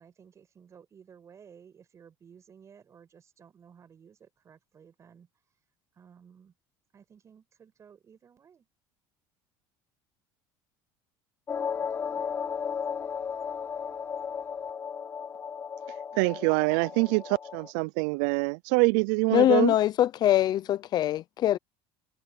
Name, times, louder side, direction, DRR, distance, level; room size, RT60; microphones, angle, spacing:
voice 1, 0.0-5.3 6.0-6.5 6.9-8.7 12.0-12.2, right 7 dB, 30° right, 5.5 m, -55 dB
sound 1, 11.5-17.7, left 6 dB, 25° left, 3.6 m, -35 dB
voice 2, 16.2-19.7, right 27 dB, 85° right, 0.4 m, -25 dB
voice 3, 19.3-21.6, left 12 dB, 45° left, 0.5 m, -23 dB
cardioid pair, 130°, 10 cm